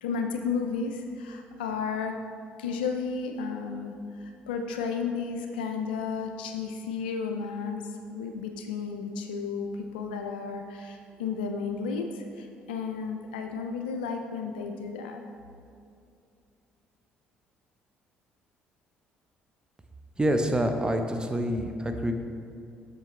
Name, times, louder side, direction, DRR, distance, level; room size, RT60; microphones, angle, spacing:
voice 1, 0.0-2.2 2.6-15.2, left 5 dB, 85° left, 5 dB, 0.4 m, -33 dB
voice 2, 20.2-22.1, equal, 15° right, 5 dB, 0.8 m, -26 dB
7.5 x 6.5 x 3.2 m, 2.5 s
hypercardioid pair, 55°, 5 cm